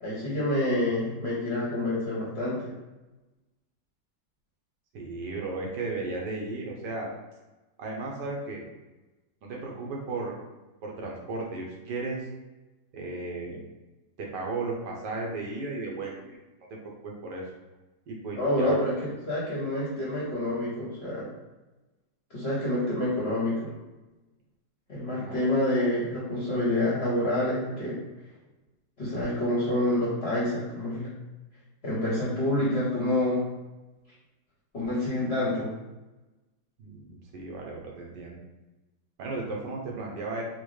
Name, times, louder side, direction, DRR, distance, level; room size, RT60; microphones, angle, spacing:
voice 1, 0.0-2.7 18.3-21.3 22.3-23.7 24.9-28.0 29.0-31.1 31.8-33.5 34.7-35.7, left 1 dB, 50° left, -7 dB, 0.8 m, -27 dB
voice 2, 4.9-7.1 7.8-8.6 9.4-10.4 10.8-12.2 12.9-13.6 14.2-16.2 17.0-17.4 18.1-18.8 25.1-25.4 36.8-38.4 39.2-40.4, right 3 dB, 70° right, -1 dB, 1.3 m, -35 dB
4.4 x 2.2 x 3.1 m, 1.1 s
omnidirectional pair, 2.0 m